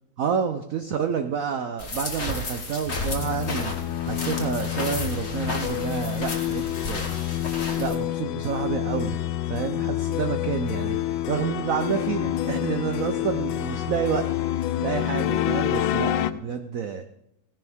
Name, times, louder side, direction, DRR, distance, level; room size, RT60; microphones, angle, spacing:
voice 1, 0.2-3.7 4.0-7.1 7.8-14.3 14.8-17.0, right 7 dB, 60° right, 7 dB, 0.9 m, -29 dB
sound 1, 1.8-7.9, left 2 dB, 35° left, 1.7 m, -33 dB
sound 2, 2.9-16.3, left 12 dB, 80° left, 1.4 m, -28 dB
16.0 x 10.5 x 3.6 m, 0.78 s
omnidirectional pair, 2.1 m